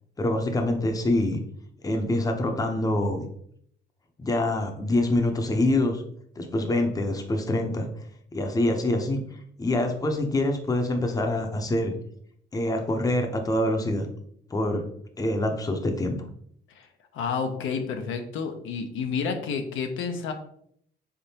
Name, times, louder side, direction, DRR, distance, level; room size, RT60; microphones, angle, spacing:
voice 1, 0.2-1.4 1.8-3.3 4.2-6.0 6.4-7.9 8.3-9.2 9.6-11.9 12.5-14.1 14.5-14.8 15.2-16.2, left 1 dB, 20° left, 4 dB, 0.6 m, -25 dB
voice 2, 17.1-20.3, left 5 dB, 80° left, 5 dB, 0.6 m, -30 dB
3.8 x 3.5 x 2.8 m, 0.68 s
cardioid pair, 90°, 20 cm